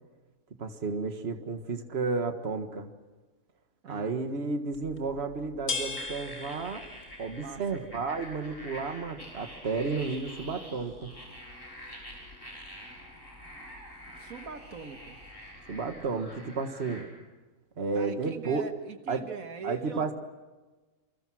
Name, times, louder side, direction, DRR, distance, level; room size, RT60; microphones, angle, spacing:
voice 1, 0.6-2.9 3.9-6.8 7.2-11.1 15.7-17.1 17.8-18.6 19.1-19.3 19.6-20.1, right 4 dB, 50° right, 7 dB, 1.8 m, -32 dB
voice 2, 3.8-4.2 7.4-7.9 13.1-13.2 14.2-15.2 17.9-20.1, right 5 dB, 80° right, 7 dB, 1.9 m, -42 dB
sound 1, 4.7-16.2, left 3 dB, 60° left, 2.8 m, -44 dB
sound 2, 6.0-17.0, equal, 15° left, 6.8 m, -47 dB
28.5 x 24.5 x 6.3 m, 1.2 s
omnidirectional pair, 1.5 m